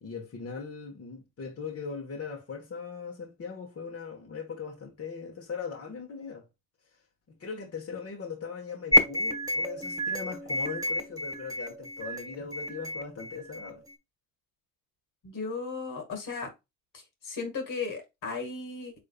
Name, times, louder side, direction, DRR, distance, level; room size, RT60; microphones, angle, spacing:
voice 1, 0.0-6.5 7.3-13.8, left 5 dB, 45° left, 1.4 m, -39 dB
sound 1, 8.9-13.9, left 1 dB, 10° right, 1.3 m, -29 dB
voice 2, 15.2-16.5 16.9-18.9, left 4 dB, 70° left, 2.0 m, -36 dB
5.2 x 3.7 x 2.4 m
cardioid pair, 80°, 33 cm